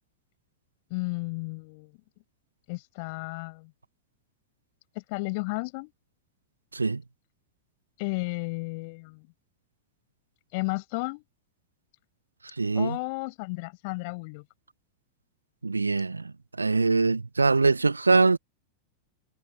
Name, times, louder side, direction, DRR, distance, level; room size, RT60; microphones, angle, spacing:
voice 1, 0.9-1.9 2.7-3.7 4.9-5.9 8.0-9.3 10.5-11.2 12.7-14.4, left 29 dB, 45° left, 6.8 m, -33 dB
voice 2, 12.6-13.0 15.6-16.2 16.6-18.4, right 3 dB, 80° right, 1.1 m, -23 dB
figure-of-eight pair, 90°, 0 cm